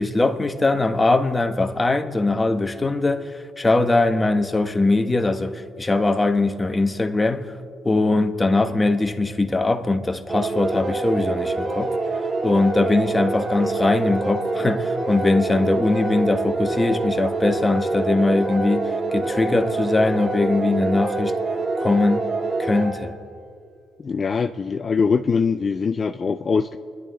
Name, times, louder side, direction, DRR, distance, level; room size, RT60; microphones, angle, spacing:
voice 1, 0.0-7.5 7.8-12.0 12.4-21.3 21.8-22.2 22.6-23.1, left 2 dB, 20° left, 1.3 m, -21 dB
sound 1, 10.3-23.3, right 3 dB, 40° right, 2.6 m, -26 dB
voice 2, 24.0-26.8, left 5 dB, 45° left, 0.5 m, -22 dB
29.0 x 11.0 x 3.8 m
supercardioid pair, 65°, 0 cm